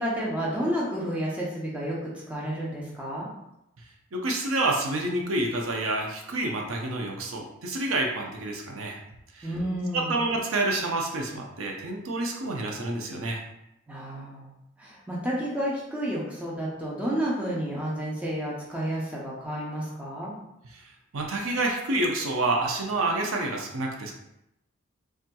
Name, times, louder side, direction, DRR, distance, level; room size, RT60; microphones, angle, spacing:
voice 1, 0.0-3.3 9.4-10.2 13.9-14.5 14.8-20.4, equal, 5° right, -6 dB, 0.6 m, -31 dB
voice 2, 4.1-9.0 9.3-9.5 9.9-13.4 20.7-20.8 21.1-24.1, right 2 dB, 80° right, 1 dB, 0.5 m, -28 dB
3.5 x 2.7 x 2.2 m, 0.85 s
head